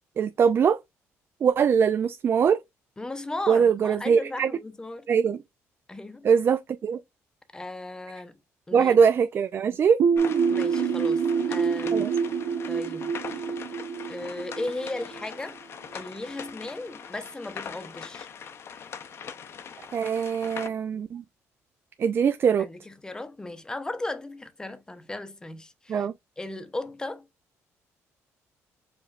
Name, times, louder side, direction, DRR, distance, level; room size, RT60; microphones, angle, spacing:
voice 1, 0.2-0.8 1.4-2.6 3.5-4.5 5.1-5.4 6.2-7.0 8.7-10.0 11.9-12.1 19.9-21.2 22.0-22.7 25.9-26.1, right 7 dB, 45° right, 0.3 m, -22 dB
voice 2, 3.0-5.1 5.9-6.3 7.5-8.4 8.7-9.0 10.5-12.1 12.7-13.6 14.1-15.6 15.9-18.3 22.6-26.1 26.4-27.3, left 2 dB, 15° left, 0.7 m, -36 dB
sound 1, 10.0-15.6, right 6 dB, 85° right, 0.7 m, -26 dB
sound 2, 10.2-20.7, left 7 dB, 50° left, 0.6 m, -42 dB
4.9 x 3.1 x 2.4 m
cardioid pair, 105°, 5 cm